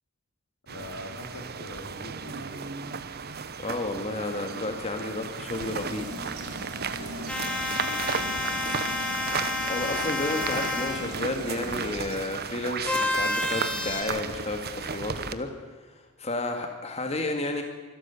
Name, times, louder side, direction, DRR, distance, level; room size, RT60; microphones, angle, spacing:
voice 1, 0.7-2.7 6.9-7.4 7.9-8.5, left 1 dB, 85° left, 3 dB, 3.9 m, -43 dB
sound 1, 0.7-15.3, right 6 dB, 45° right, 1.0 m, -35 dB
voice 2, 3.6-6.1 9.7-15.5 16.2-17.6, left 2 dB, 30° left, 4 dB, 2.0 m, -31 dB
sound 2, 5.5-11.9, right 1 dB, 75° right, 4.9 m, -39 dB
sound 3, 7.3-11.1 12.8-14.0, left 2 dB, 5° left, 3.1 m, -29 dB
25.5 x 13.0 x 8.3 m, 1.3 s
head